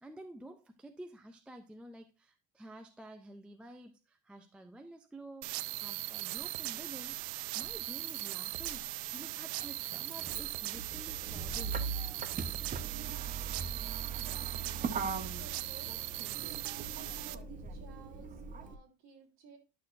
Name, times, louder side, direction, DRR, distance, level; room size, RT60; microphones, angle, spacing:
voice 1, 0.0-7.2 7.5-8.9 9.1-11.8, right 1 dB, 5° right, 0.4 m, -50 dB
sound 1, 5.4-17.3, right 18 dB, 65° right, 0.6 m, -39 dB
Motor vehicle (road), 6.4-6.5 7.6-18.7, right 5 dB, 20° right, 0.9 m, -41 dB
voice 2, 14.0-15.9 16.4-19.6, right 6 dB, 45° right, 3.5 m, -55 dB
11.0 x 6.5 x 2.6 m
cardioid pair, 155°, 38 cm